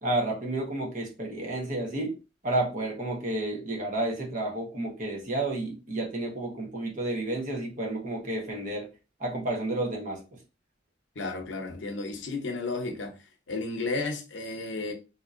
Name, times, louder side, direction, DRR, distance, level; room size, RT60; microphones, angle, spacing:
voice 1, 0.0-2.1 2.4-8.9 9.2-10.2, right 2 dB, 45° right, 1.1 m, -31 dB
voice 2, 11.2-13.1 13.5-14.9, left 3 dB, 80° left, 0.7 m, -33 dB
3.6 x 2.7 x 2.5 m
head